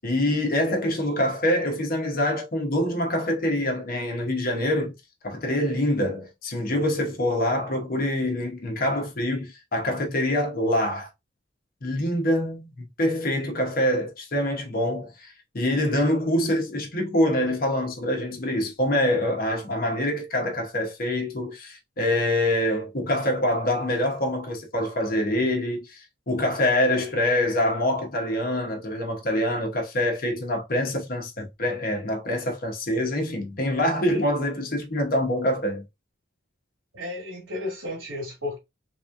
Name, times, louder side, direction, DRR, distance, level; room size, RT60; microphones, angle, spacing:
voice 1, 0.0-4.9 5.2-11.1 11.8-35.8, left 1 dB, 50° left, 1.1 m, -25 dB
voice 2, 36.9-38.6, left 2 dB, 80° right, 2.0 m, -33 dB
3.5 x 3.1 x 2.6 m
head